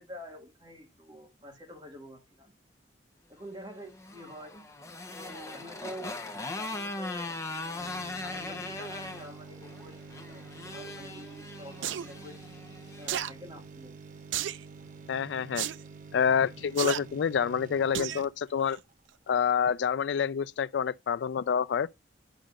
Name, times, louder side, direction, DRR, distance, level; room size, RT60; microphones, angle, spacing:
voice 1, 0.0-2.5 3.3-4.7 5.1-6.2 6.6-12.4 13.0-14.0, equal, 25° right, 1.9 m, -47 dB
Motorcycle, 3.7-13.1, left 2 dB, 15° left, 0.8 m, -40 dB
sound 1, 7.8-19.4 19.8-19.9, right 4 dB, 45° right, 0.6 m, -48 dB
sound 2, 11.8-12.1 13.1-13.3 14.3-14.6 15.6-15.8 16.8-17.0 17.9-18.2 18.7-18.8, right 10 dB, 80° right, 0.4 m, -31 dB
voice 2, 15.1-15.7 16.1-18.8 19.3-21.9, left 7 dB, 70° left, 0.3 m, -27 dB
10.0 x 5.2 x 2.4 m
head